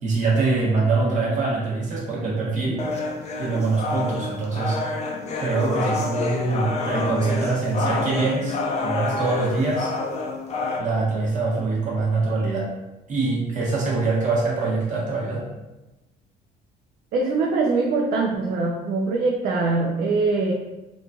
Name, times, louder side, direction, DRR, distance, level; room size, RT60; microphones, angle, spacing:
voice 1, 0.0-2.8 3.4-4.8 5.4-9.9 10.8-12.7 13.1-15.4, right 3 dB, 45° right, -4 dB, 1.0 m, -24 dB
sound 1, 2.8-10.8, left 3 dB, 40° left, 0.5 m, -28 dB
voice 2, 17.1-20.5, right 3 dB, 60° right, -1 dB, 0.4 m, -22 dB
3.0 x 2.6 x 2.3 m, 1.0 s
cardioid pair, 110°, 17 cm